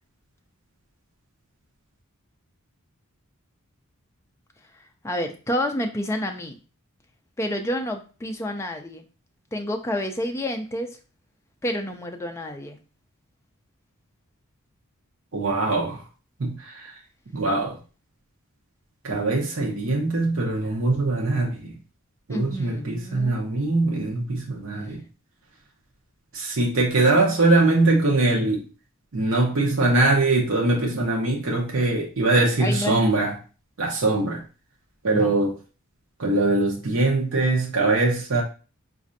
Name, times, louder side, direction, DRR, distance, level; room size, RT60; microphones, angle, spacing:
voice 1, 5.0-6.6 7.4-9.0 9.5-11.0 11.6-12.8 22.3-23.4 32.6-33.1 35.1-35.4, left 1 dB, 10° left, 4 dB, 0.3 m, -29 dB
voice 2, 15.3-16.0 16.4-16.9 17.3-17.8 19.0-21.7 22.3-25.0 26.3-28.6 29.1-33.3 33.8-34.4 35.0-35.5 36.2-38.4, right 2 dB, 60° right, -1 dB, 0.8 m, -22 dB
4.2 x 2.5 x 2.6 m, 0.35 s
head